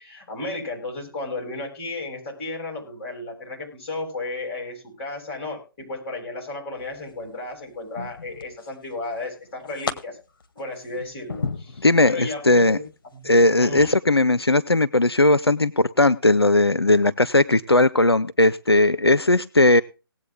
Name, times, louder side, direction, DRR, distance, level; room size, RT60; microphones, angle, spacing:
voice 1, 0.0-10.2 10.6-12.8 13.1-13.9, left 2 dB, 30° left, 0 dB, 7.2 m, -34 dB
sound 1, 6.8-7.3 7.9-8.9 9.2-9.9 10.4-12.2 12.7-13.0 13.7-13.9, left 4 dB, 60° left, 1.9 m, -34 dB
voice 2, 11.8-12.8 13.3-19.8, left 2 dB, 90° left, 16 dB, 0.6 m, -18 dB
18.5 x 8.6 x 3.7 m, 0.32 s
figure-of-eight pair, 140°, 13 cm